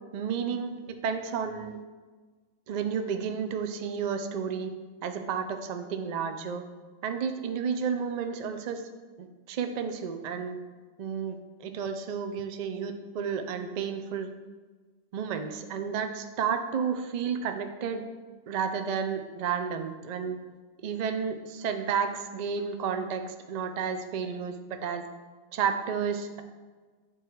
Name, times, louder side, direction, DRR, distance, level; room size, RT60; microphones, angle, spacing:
voice 1, 0.1-1.8 2.7-4.7 5.0-6.6 7.0-8.8 9.2-10.6 11.0-14.3 15.1-18.0 18.5-20.4 20.8-25.0 25.5-26.4, right 6 dB, 65° right, 7 dB, 0.4 m, -31 dB
8.9 x 3.1 x 4.5 m, 1.4 s
omnidirectional pair, 1.4 m